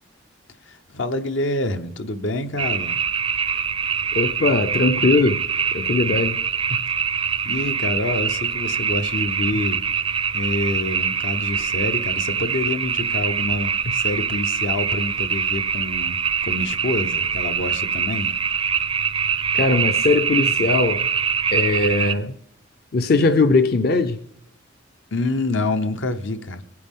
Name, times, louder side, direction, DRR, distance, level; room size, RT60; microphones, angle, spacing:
voice 1, 0.6-3.0 7.4-9.8 10.3-16.2 16.4-18.3 25.1-26.6, left 2 dB, 75° left, 0.9 m, -27 dB
sound 1, 2.6-22.1, right 7 dB, 25° right, 0.4 m, -24 dB
voice 2, 4.1-5.4 5.7-6.4 6.7-6.8 19.5-21.1 21.5-22.3 22.9-24.2, left 3 dB, 50° left, 0.5 m, -20 dB
23.0 x 9.4 x 3.7 m
head